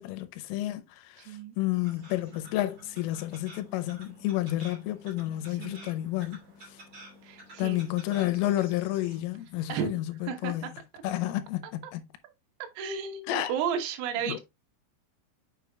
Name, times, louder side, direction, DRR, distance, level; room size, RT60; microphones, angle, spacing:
voice 1, 0.0-6.4 7.6-10.6 11.0-12.0 13.3-13.5 14.3-14.4, left 15 dB, 90° left, 3.3 m, -30 dB
voice 2, 1.2-1.6 5.5-5.9 7.2-8.0 9.7-9.9 10.3-11.0 12.8-14.4, right 7 dB, 85° right, 3.7 m, -34 dB
sound 1, 1.7-9.2, right 1 dB, 30° right, 2.3 m, -51 dB
6.9 x 6.8 x 2.3 m
omnidirectional pair, 5.7 m